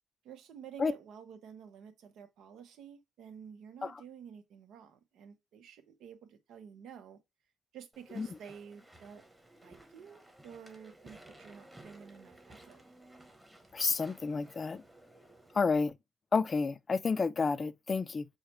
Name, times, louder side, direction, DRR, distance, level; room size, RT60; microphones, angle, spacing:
voice 1, 0.2-7.2 7.7-9.2 9.6-12.8, right 8 dB, 80° right, 0.8 m, -51 dB
Walk footsteps / Chatter / Squeak, 7.9-15.6, right 1 dB, 10° right, 1.0 m, -57 dB
voice 2, 13.7-14.8 15.5-15.9 16.3-18.2, left 4 dB, 35° left, 0.4 m, -30 dB
4.8 x 2.2 x 4.2 m
cardioid pair, 90°, 0 cm